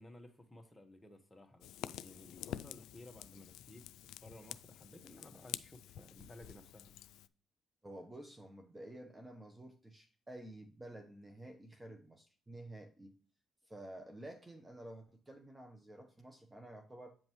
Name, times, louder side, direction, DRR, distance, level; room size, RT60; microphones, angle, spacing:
voice 1, 0.0-3.8 4.2-6.9, left 1 dB, 10° left, 4 dB, 1.3 m, -56 dB
Fire, 1.6-7.3, left 12 dB, 90° left, 0.3 m, -48 dB
voice 2, 7.8-13.2 13.6-17.1, right 1 dB, 15° right, 4 dB, 0.9 m, -51 dB
8.7 x 5.3 x 3.1 m, 0.40 s
cardioid pair, 90°, 0 cm